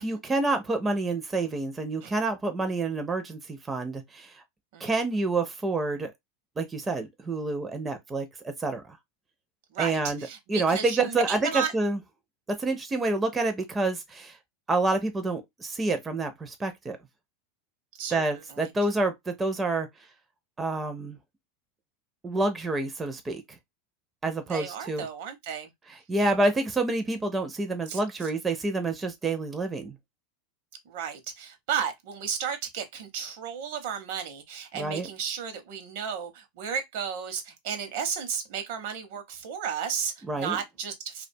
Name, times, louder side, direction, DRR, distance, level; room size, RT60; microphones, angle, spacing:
voice 1, 0.0-4.3 4.8-6.1 6.6-8.8 9.8-12.0 12.6-14.4 14.7-17.0 18.1-19.9 20.6-21.2 22.2-23.4 24.2-25.1 25.9-30.0 34.7-35.1 40.3-40.6, right 2 dB, 15° right, 0.4 m, -28 dB
voice 2, 9.7-11.7 18.0-18.2 18.5-18.7 24.5-25.7 27.9-28.0 30.9-41.3, right 7 dB, 65° right, 0.7 m, -33 dB
2.4 x 2.1 x 2.5 m
supercardioid pair, 140°, 0 cm